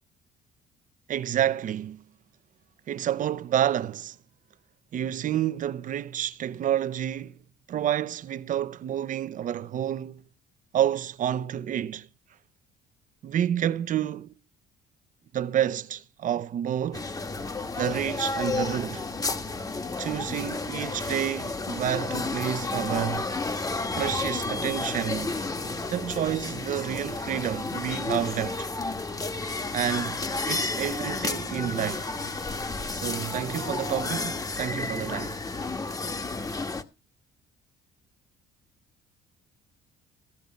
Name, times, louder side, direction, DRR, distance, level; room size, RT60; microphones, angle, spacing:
voice 1, 1.1-2.0 2.9-4.2 4.9-7.4 7.7-10.2 10.7-12.1 13.2-14.3 15.3-17.1 17.8-19.1 20.0-23.3 23.9-25.4 25.9-28.7 29.7-32.1 32.9-35.4, right 10 dB, 50° right, 0.8 m, -29 dB
sound 1, 16.9-36.8, left 3 dB, 20° left, 1.2 m, -31 dB
15.0 x 6.9 x 5.2 m
cardioid pair, 110°, 17 cm